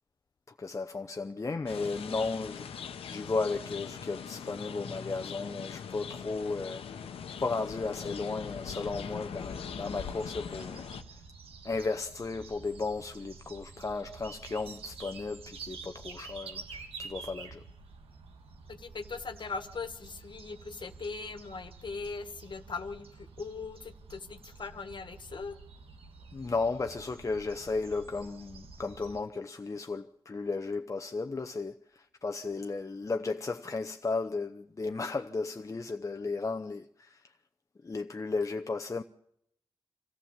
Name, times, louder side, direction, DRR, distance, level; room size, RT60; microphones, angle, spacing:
voice 1, 0.6-6.8 7.4-10.9 11.6-17.6 26.3-37.2 37.8-39.0, left 3 dB, 35° left, 0.7 m, -34 dB
sound 1, 1.7-11.0, left 7 dB, 90° left, 1.0 m, -41 dB
sound 2, 9.4-29.2, right 4 dB, 80° right, 1.7 m, -49 dB
voice 2, 18.7-25.6, left 4 dB, 55° left, 1.5 m, -40 dB
25.5 x 14.5 x 7.3 m
cardioid pair, 60°, 9 cm